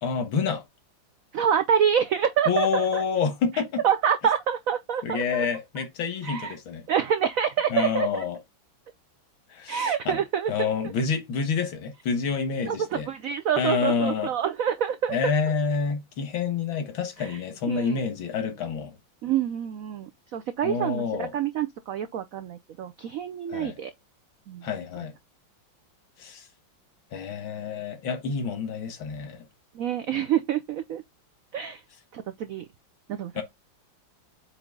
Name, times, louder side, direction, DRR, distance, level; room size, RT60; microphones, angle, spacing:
voice 1, 0.0-0.6 2.5-3.8 5.0-6.8 7.7-8.4 9.5-10.2 10.5-13.1 13.6-14.3 15.1-18.9 20.6-21.3 23.5-23.8 24.6-25.1 26.2-26.4 27.1-29.4 33.4-33.5, left 5 dB, 80° left, 2.3 m, -28 dB
voice 2, 1.3-3.0 3.5-5.5 6.2-6.6 6.9-8.2 9.7-10.7 12.6-15.3 17.2-17.4 17.7-18.0 19.2-21.0 21.3-23.9 24.5-24.7 29.7-31.0 31.5-31.8 32.1-32.6 33.1-33.4, right 8 dB, 85° right, 0.7 m, -27 dB
7.9 x 3.3 x 3.6 m
omnidirectional pair, 2.2 m